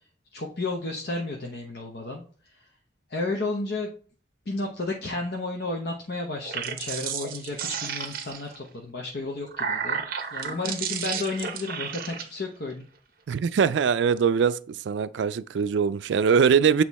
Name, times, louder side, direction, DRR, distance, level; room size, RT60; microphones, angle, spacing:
voice 1, 0.3-2.2 3.1-3.9 4.5-10.0 10.3-12.9, left 2 dB, 60° left, 0.9 m, -32 dB
sound 1, 6.4-8.6 9.2-12.2, right 7 dB, 50° right, 0.8 m, -32 dB
voice 2, 13.3-14.6 14.9-16.8, right 6 dB, 80° right, 0.4 m, -22 dB
8.1 x 3.0 x 4.1 m
head